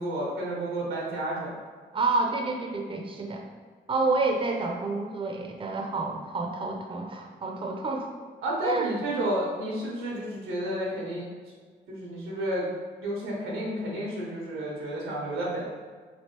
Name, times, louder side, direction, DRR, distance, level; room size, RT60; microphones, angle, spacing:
voice 1, 0.0-1.6 8.4-11.2 11.9-12.7 13.0-15.7, right 1 dB, 85° right, -4 dB, 0.9 m, -31 dB
voice 2, 1.9-3.5 3.9-8.1 8.6-8.9, right 3 dB, 25° right, 1 dB, 0.5 m, -29 dB
3.2 x 2.7 x 2.9 m, 1.5 s
supercardioid pair, 45°, 20 cm